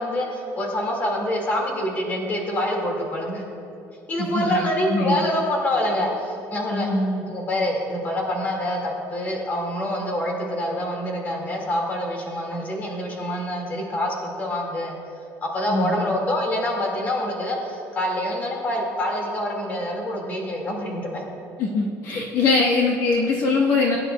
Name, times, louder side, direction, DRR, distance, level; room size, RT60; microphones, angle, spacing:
voice 1, 0.0-3.4 4.1-6.9 7.3-15.0 15.5-21.2, left 1 dB, 25° left, 0 dB, 2.0 m, -26 dB
voice 2, 4.2-5.2 6.7-7.2 15.7-16.1 21.6-24.0, left 3 dB, 55° left, -1 dB, 1.1 m, -22 dB
20.5 x 9.8 x 2.3 m, 2.8 s
cardioid pair, 175°, 7 cm